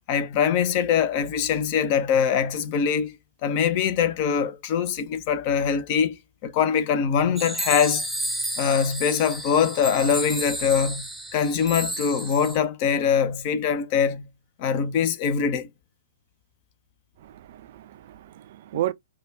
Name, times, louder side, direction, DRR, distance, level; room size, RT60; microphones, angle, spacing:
voice 1, 0.1-3.2 3.4-6.2 6.4-8.0 8.6-14.3 14.6-15.7, left 7 dB, 40° left, 0.8 m, -23 dB
sound 1, 7.4-12.6, right 1 dB, ahead, 0.8 m, -32 dB
voice 2, 17.2-18.9, right 13 dB, 45° right, 0.4 m, -32 dB
4.9 x 2.4 x 4.5 m
figure-of-eight pair, 110°, 0 cm